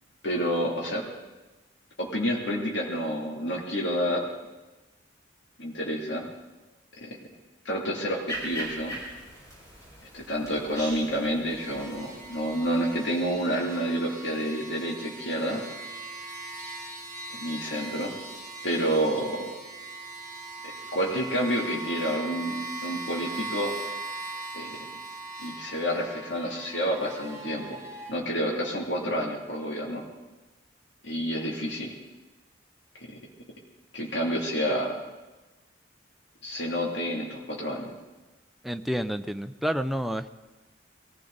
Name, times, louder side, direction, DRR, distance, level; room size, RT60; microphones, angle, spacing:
voice 1, 0.2-1.1 2.0-4.2 5.6-6.3 7.0-7.2 7.6-9.0 10.1-15.6 17.3-18.1 18.6-19.5 20.9-23.7 24.5-24.8 25.4-27.8 28.1-30.0 31.0-31.9 33.0-33.2 33.9-34.9 36.4-37.9, equal, 70° left, -2 dB, 2.8 m, -29 dB
sound 1, 8.3-13.8, equal, 15° left, 6.0 m, -41 dB
sound 2, 11.5-28.1, right 3 dB, 20° right, 4.6 m, -40 dB
voice 2, 38.6-40.3, equal, ahead, 8 dB, 0.4 m, -29 dB
22.5 x 15.0 x 4.0 m, 1.2 s
head